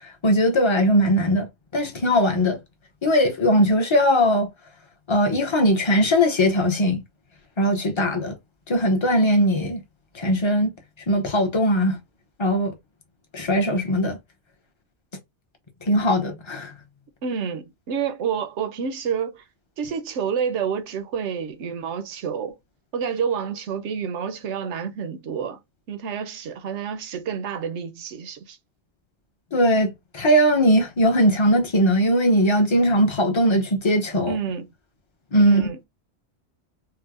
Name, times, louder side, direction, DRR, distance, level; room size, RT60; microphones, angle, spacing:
voice 1, 0.0-1.5 1.7-2.6 3.0-4.5 5.1-7.0 7.6-8.4 8.7-9.8 10.1-10.7 11.1-12.0 12.4-12.7 13.3-14.2 15.8-16.7 29.5-34.3 35.3-35.7, equal, 30° left, 0.7 m, -20 dB
voice 2, 17.2-19.4 19.8-22.6 22.9-25.6 25.9-28.6 34.3-34.7 35.5-35.8, right 7 dB, 85° right, 1.0 m, -29 dB
4.6 x 2.1 x 2.4 m
omnidirectional pair, 1.2 m